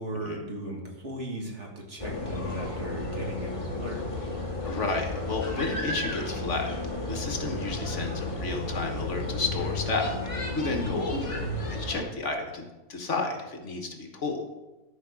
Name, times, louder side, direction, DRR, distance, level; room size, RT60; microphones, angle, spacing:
voice 1, 0.0-4.1 10.7-11.1, right 1 dB, 55° right, 0 dB, 2.2 m, -37 dB
sound 1, 2.0-12.0, left 2 dB, 25° left, 1.6 m, -33 dB
voice 2, 4.6-6.8 7.1-10.1 10.5-12.6 12.9-14.4, left 3 dB, 60° left, 3 dB, 1.6 m, -32 dB
13.0 x 4.8 x 6.3 m, 1.1 s
omnidirectional pair, 1.4 m